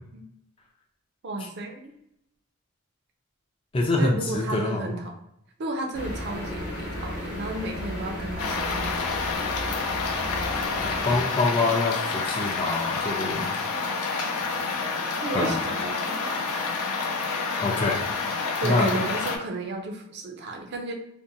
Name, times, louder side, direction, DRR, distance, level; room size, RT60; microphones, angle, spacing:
voice 1, 1.2-1.9 3.9-5.1 5.6-8.9 15.2-16.7 18.6-20.9, right 2 dB, 50° right, 2 dB, 0.5 m, -33 dB
voice 2, 3.7-5.0 10.8-13.5 15.3-15.6 17.6-18.0 18.6-19.0, left 2 dB, 25° left, 0 dB, 0.3 m, -25 dB
sound 1, 5.9-11.2, left 1 dB, 50° left, 0.9 m, -34 dB
sound 2, 8.4-19.4, left 4 dB, 90° left, 0.5 m, -28 dB
2.6 x 2.1 x 2.6 m, 0.79 s
head